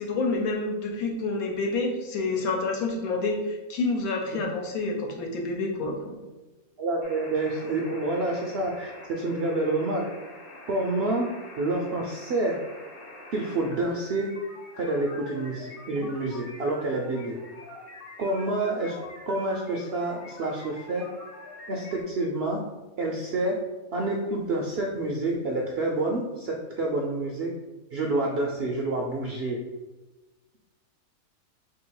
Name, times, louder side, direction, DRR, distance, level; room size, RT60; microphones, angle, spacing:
voice 1, 0.0-6.2, left 3 dB, 75° left, 2 dB, 1.2 m, -28 dB
voice 2, 6.8-10.0 10.7-11.3 11.6-12.6 13.3-14.3 14.8-17.4 18.2-18.9 19.3-21.1 21.7-22.6 23.0-23.6 23.9-27.5 27.9-29.6, right 2 dB, 70° right, -1 dB, 0.6 m, -28 dB
sound 1, 7.0-22.0, left 2 dB, 45° left, 1.0 m, -45 dB
3.3 x 2.8 x 4.6 m, 1.2 s
omnidirectional pair, 1.6 m